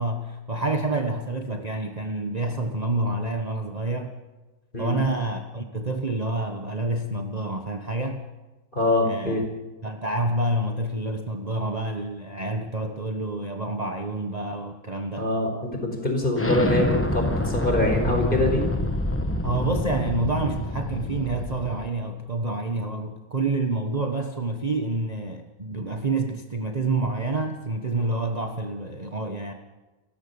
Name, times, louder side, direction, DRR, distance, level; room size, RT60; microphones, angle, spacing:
voice 1, 0.0-4.2 4.8-8.2 9.0-9.4 9.8-15.3 19.4-29.5, right 2 dB, 25° right, 4 dB, 1.3 m, -28 dB
voice 2, 8.7-9.4 15.2-18.6, left 1 dB, 30° left, 3 dB, 4.8 m, -24 dB
Explosion, 16.4-21.9, left 1 dB, 10° left, 1.1 m, -27 dB
30.0 x 15.0 x 7.1 m, 1.1 s
omnidirectional pair, 1.6 m